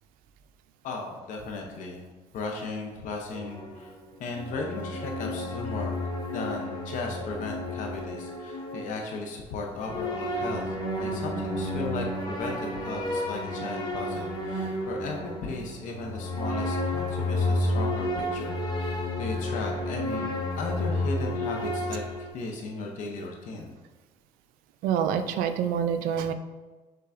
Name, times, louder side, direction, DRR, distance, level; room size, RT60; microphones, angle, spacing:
voice 1, 0.8-2.0 2.3-3.9 4.2-6.0 6.3-23.7, left 3 dB, 65° left, 1 dB, 0.7 m, -36 dB
sound 1, 3.3-9.2 9.8-22.3, left 1 dB, 30° left, 1.0 m, -31 dB
voice 2, 24.8-26.3, right 8 dB, 90° right, 9 dB, 0.4 m, -26 dB
5.5 x 3.8 x 2.5 m, 1.2 s
cardioid pair, 115°, 14 cm